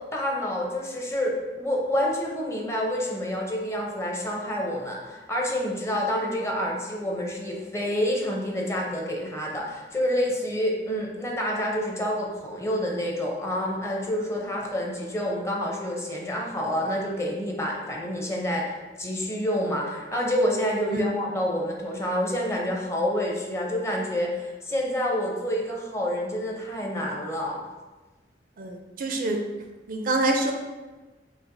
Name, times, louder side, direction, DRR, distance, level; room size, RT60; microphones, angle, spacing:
voice 1, 0.0-27.6, equal, 15° left, -1 dB, 0.6 m, -28 dB
voice 2, 28.6-29.4 29.9-30.5, right 2 dB, 50° right, 3 dB, 0.4 m, -26 dB
5.4 x 2.4 x 2.6 m, 1.2 s
head